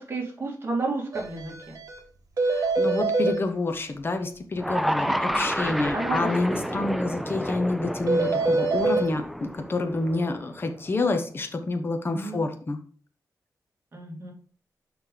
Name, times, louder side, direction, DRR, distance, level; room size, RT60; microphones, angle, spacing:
voice 1, 0.0-1.8 5.0-5.4 5.8-6.6 7.2-7.3 12.1-12.4 13.9-14.3, right 3 dB, 35° right, -2 dB, 2.6 m, -32 dB
sound 1, 1.1-1.2 1.5-1.6 1.9-2.0 2.4-3.3 8.1-9.0, right 3 dB, 60° right, 1.4 m, -23 dB
voice 2, 2.5-12.8, left 2 dB, 35° left, 6 dB, 1.0 m, -28 dB
sound 2, 4.6-10.8, equal, ahead, 0.4 m, -30 dB
6.5 x 5.3 x 3.9 m, 0.44 s
wide cardioid pair, 105°, 7 cm